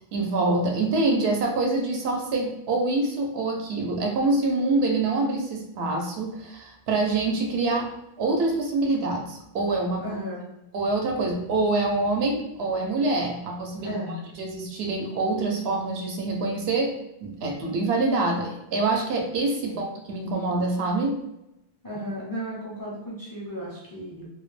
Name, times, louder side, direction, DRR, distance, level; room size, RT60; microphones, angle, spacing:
voice 1, 0.1-7.9 8.2-10.0 10.7-14.0 14.4-16.9 17.2-21.1, right 2 dB, 80° right, 1 dB, 0.8 m, -25 dB
voice 2, 10.0-10.5 13.8-14.3 19.7-19.8 21.8-24.3, equal, 30° left, -6 dB, 0.4 m, -34 dB
2.2 x 2.0 x 3.0 m, 0.85 s
omnidirectional pair, 1.1 m